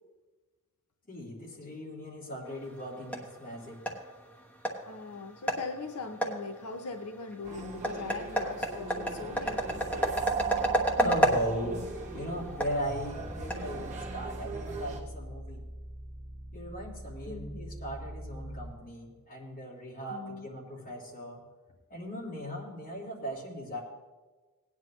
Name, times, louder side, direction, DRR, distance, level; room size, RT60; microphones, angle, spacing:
voice 1, 1.1-3.8 11.0-11.9 12.1-15.6 16.5-21.4 21.9-23.8, equal, 40° left, -4 dB, 3.1 m, -38 dB
sound 1, 2.5-14.3, equal, 5° left, 1.2 m, -33 dB
voice 2, 4.9-10.1 17.3-17.5 20.1-20.5, left 4 dB, 90° left, 5 dB, 0.7 m, -40 dB
sound 2, 7.4-15.0, right 5 dB, 30° right, 1.4 m, -39 dB
sound 3, 9.3-18.7, equal, 15° right, 3.6 m, -43 dB
18.0 x 9.6 x 3.1 m, 1.3 s
head